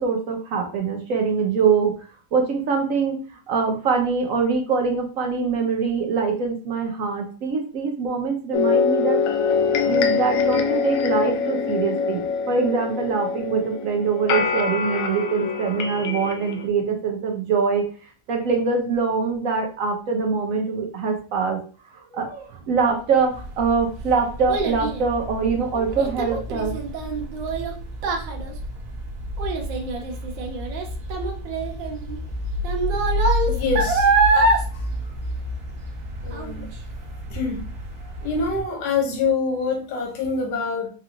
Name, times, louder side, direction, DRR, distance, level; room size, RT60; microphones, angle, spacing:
voice 1, 0.0-1.9 2.3-3.2 3.5-9.2 9.6-17.9 18.3-21.6 21.9-26.7, right 5 dB, 65° right, 0.8 m, -23 dB
sound 1, 8.5-16.7, left 5 dB, 90° left, 0.7 m, -24 dB
sound 2, 23.3-38.6, left 1 dB, 45° right, 1.2 m, -31 dB
Child speech kid speaking, 23.3-36.0 36.3-36.7 37.2-37.3, right 3 dB, 85° right, 1.5 m, -25 dB
voice 2, 33.5-34.1 34.7-34.9 36.2-36.7 37.3-37.7 38.2-40.9, left 4 dB, 70° left, 1.6 m, -25 dB
4.8 x 2.9 x 2.5 m
omnidirectional pair, 2.0 m